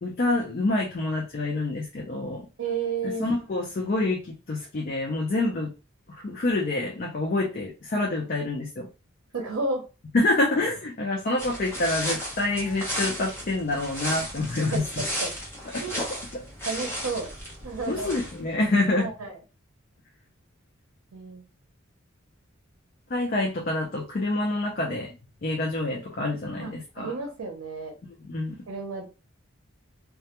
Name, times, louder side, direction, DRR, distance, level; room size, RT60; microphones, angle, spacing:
voice 1, 0.0-2.5 3.2-5.7 6.2-8.9 10.1-14.8 15.7-15.8 16.3-16.4 17.9-19.1 23.1-25.1 25.4-27.1 28.2-28.6, left 2 dB, 45° left, 0 dB, 0.4 m, -27 dB
voice 2, 2.6-3.3 9.3-9.8 14.5-14.8 15.2-15.3 15.8-16.0 16.7-17.3 17.6-18.1 18.9-19.4 21.1-21.4 26.6-27.9 28.7-29.1, right 3 dB, 85° right, 2 dB, 0.6 m, -32 dB
sound 1, 11.4-18.5, equal, 10° left, 0.7 m, -34 dB
2.2 x 2.1 x 2.8 m, 0.30 s
head